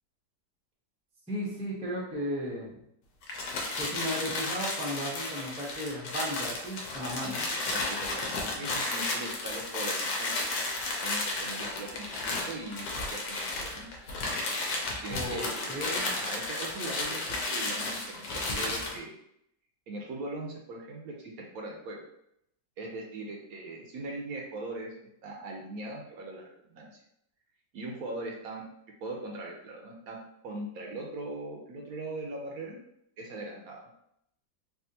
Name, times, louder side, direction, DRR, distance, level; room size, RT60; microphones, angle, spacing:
voice 1, 1.3-2.7 3.8-7.4 15.1-16.1, equal, 10° right, -5 dB, 0.3 m, -35 dB
sound 1, 3.2-19.0, left 2 dB, 85° left, 1.3 m, -33 dB
voice 2, 7.0-7.4 7.7-10.4 11.0-13.9 15.0-17.2 17.5-19.2 19.9-22.0 22.8-24.9 25.2-26.9 27.7-28.6 29.0-32.8 33.2-33.9, right 2 dB, 70° right, 0 dB, 1.0 m, -40 dB
3.5 x 2.4 x 2.7 m, 0.76 s
omnidirectional pair, 1.8 m